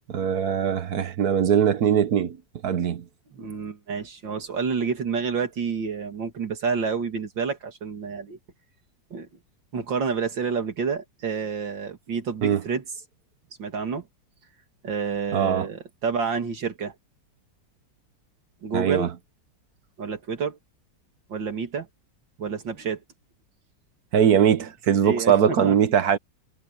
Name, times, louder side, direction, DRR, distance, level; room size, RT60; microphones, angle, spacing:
voice 1, 0.1-2.4 2.6-3.0 12.4-12.6 15.3-15.7 18.7-19.1 24.1-26.2, right 8 dB, 60° right, 1.4 m, -21 dB
voice 2, 3.3-8.4 9.1-9.3 9.7-12.8 13.6-14.1 14.8-16.9 18.6-19.1 20.0-20.6 21.3-21.9 22.4-23.0 25.0-25.8, right 5 dB, 90° right, 3.1 m, -29 dB
omnidirectional pair, 2.0 m